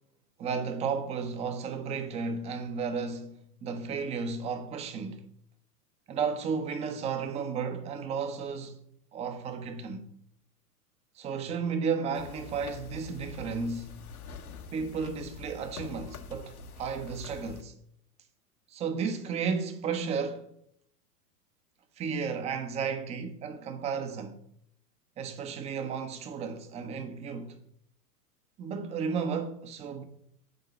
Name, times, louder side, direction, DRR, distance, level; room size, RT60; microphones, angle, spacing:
voice 1, 0.4-5.2 6.1-8.8 9.1-10.1 11.2-14.0 14.7-17.7 18.7-20.5 22.0-24.4 25.2-27.6 28.6-30.0, right 5 dB, 15° right, 0.7 m, -33 dB
sound 1, 12.1-17.6, left 5 dB, 65° left, 1.1 m, -45 dB
9.3 x 3.7 x 6.8 m
figure-of-eight pair, 100°, 47 cm